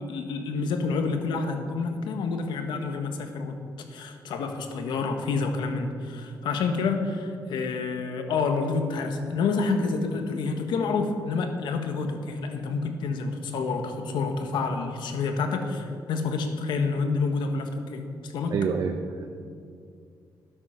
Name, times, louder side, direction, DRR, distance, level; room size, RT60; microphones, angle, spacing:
voice 1, 0.0-3.6 3.9-18.6, left 4 dB, 85° left, 6 dB, 1.4 m, -28 dB
voice 2, 18.5-19.3, right 6 dB, 55° right, 5 dB, 0.7 m, -27 dB
13.0 x 9.8 x 5.8 m, 2.3 s
cardioid pair, 150°, 8 cm